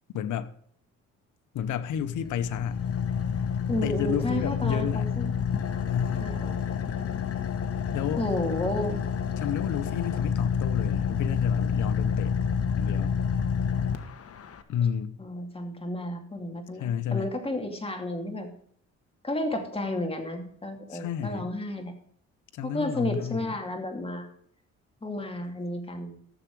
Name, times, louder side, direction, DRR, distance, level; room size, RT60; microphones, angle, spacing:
voice 1, 0.1-0.5 1.5-2.8 3.8-5.1 5.9-6.3 7.9-8.2 9.4-12.3 12.8-13.1 14.7-15.2 16.8-17.3 20.9-21.5 22.5-23.6, left 9 dB, 80° left, 0.9 m, -31 dB
Car / Idling, 1.7-14.6, left 7 dB, 50° left, 1.3 m, -29 dB
voice 2, 3.7-5.3 6.2-6.6 8.2-9.0 15.2-18.5 19.2-21.9 22.6-24.3 25.0-26.2, left 1 dB, 20° left, 2.6 m, -32 dB
14.0 x 7.2 x 4.8 m
cardioid pair, 90°, 30 cm